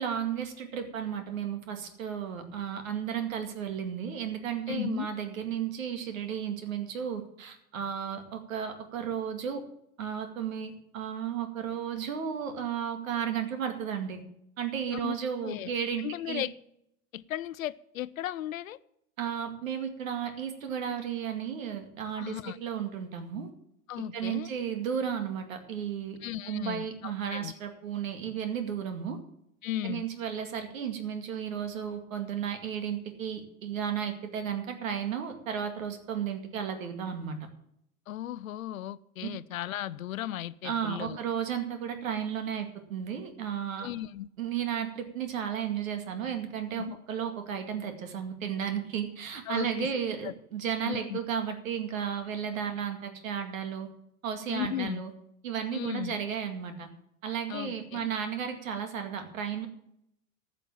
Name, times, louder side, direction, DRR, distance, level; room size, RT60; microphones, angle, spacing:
voice 1, 0.0-9.6 10.0-14.2 14.6-16.4 19.2-23.5 24.1-26.2 26.5-29.2 29.8-37.4 40.6-43.9 44.4-53.9 54.2-55.1 55.4-56.9 57.2-59.7, right 8 dB, 65° right, 7 dB, 2.2 m, -34 dB
voice 2, 4.7-5.1 14.9-15.2 15.4-15.7 16.0-16.5 17.1-18.8 22.2-22.6 23.9-24.5 26.2-27.5 29.6-30.1 38.1-41.2 43.8-44.3 46.8-47.0 49.5-49.9 50.2-50.3 50.8-51.2 54.5-55.0 55.7-56.2 57.5-58.1, left 13 dB, 70° left, 18 dB, 0.7 m, -36 dB
14.5 x 6.1 x 7.4 m, 0.76 s
figure-of-eight pair, 85°, 42 cm